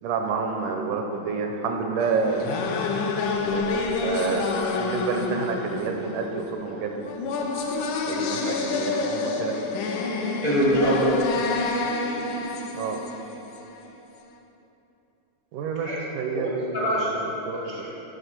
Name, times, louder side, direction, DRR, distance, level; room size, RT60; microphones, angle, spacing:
voice 1, 0.0-2.6 3.4-3.7 4.0-7.0 8.1-9.6 12.8-13.0 15.5-17.8, right 4 dB, 80° right, 3 dB, 2.0 m, -29 dB
sound 1, 2.0-13.9, left 3 dB, 80° left, 2.2 m, -28 dB
voice 2, 10.4-11.2 15.8-16.0 16.3-17.1 17.6-17.9, equal, 45° left, -8 dB, 1.2 m, -24 dB
11.5 x 4.4 x 5.9 m, 3.0 s
omnidirectional pair, 3.8 m